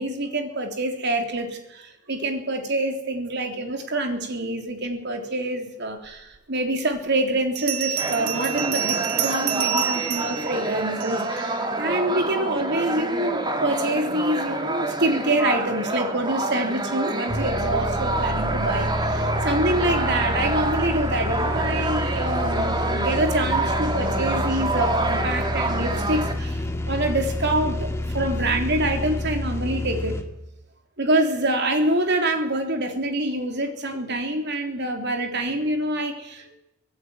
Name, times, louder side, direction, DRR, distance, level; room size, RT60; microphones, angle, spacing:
voice 1, 0.0-27.9 28.1-30.1 31.0-36.5, right 1 dB, 50° right, 5 dB, 3.5 m, -26 dB
Bell, 6.3-6.4 7.6-11.4, right 12 dB, 75° right, 1.0 m, -28 dB
sound 1, 8.0-26.3, right 2 dB, 20° right, 2.1 m, -27 dB
sound 2, 17.3-30.2, left 1 dB, 10° left, 2.1 m, -29 dB
24.5 x 16.5 x 9.1 m, 0.90 s
head